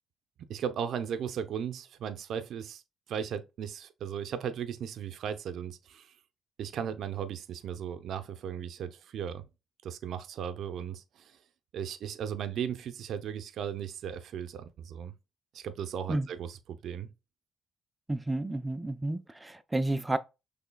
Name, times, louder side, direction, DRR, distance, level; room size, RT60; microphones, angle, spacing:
voice 1, 0.5-2.8 3.1-6.1 6.6-9.4 9.8-11.4 11.7-15.1 15.5-17.1, right 8 dB, 70° right, 0.6 m, -36 dB
voice 2, 18.1-20.2, right 2 dB, 15° right, 0.4 m, -31 dB
6.0 x 3.2 x 2.2 m
cardioid pair, 90°, 0 cm